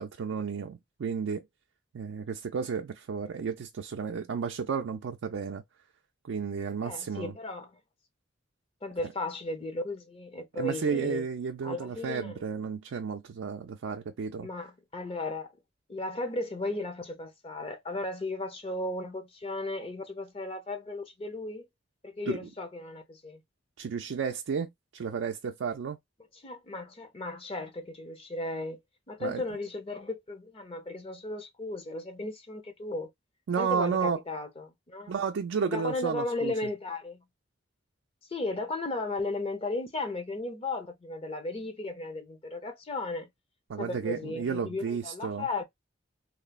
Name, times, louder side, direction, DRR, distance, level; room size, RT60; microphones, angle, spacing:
voice 1, 0.0-1.5 1.9-5.6 6.2-7.3 9.0-9.1 10.5-14.5 22.3-22.4 23.8-26.0 29.2-29.4 33.5-34.2 35.1-36.5 43.7-45.5, right 6 dB, 85° right, 0.4 m, -32 dB
voice 2, 6.8-7.8 8.8-11.3 11.6-12.4 14.4-15.5 15.9-21.7 22.0-23.4 26.4-28.8 29.1-33.1 33.6-35.1 35.6-37.2 38.3-43.3 43.8-45.6, left 2 dB, 30° left, 0.7 m, -35 dB
3.1 x 2.0 x 2.2 m
head